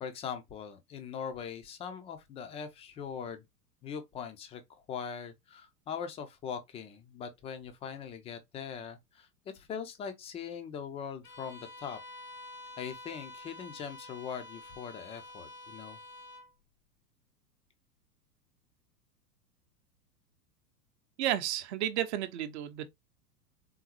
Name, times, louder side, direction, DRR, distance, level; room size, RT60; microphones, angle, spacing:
voice 1, 0.0-3.4 3.8-4.6 4.9-9.3 9.5-12.0 12.8-16.0, left 7 dB, 15° left, 0.5 m, -41 dB
Bowed string instrument, 11.2-16.5, left 1 dB, 70° left, 1.4 m, -48 dB
voice 2, 21.2-22.9, right 12 dB, 45° right, 0.8 m, -32 dB
3.9 x 3.8 x 2.8 m
figure-of-eight pair, 95°, 48 cm